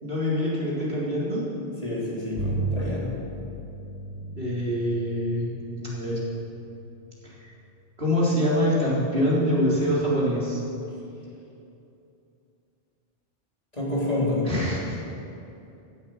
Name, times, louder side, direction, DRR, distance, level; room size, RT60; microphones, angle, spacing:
voice 1, 0.0-1.4 4.3-6.2 7.2-7.5 8.0-10.6 14.4-15.0, equal, 65° right, -7 dB, 4.2 m, -25 dB
voice 2, 1.8-3.1 13.7-14.4, left 1 dB, 40° left, -6 dB, 4.1 m, -28 dB
Bowed string instrument, 2.4-8.0, right 2 dB, 85° right, 2.6 m, -36 dB
16.5 x 12.0 x 6.5 m, 2.7 s
omnidirectional pair, 1.0 m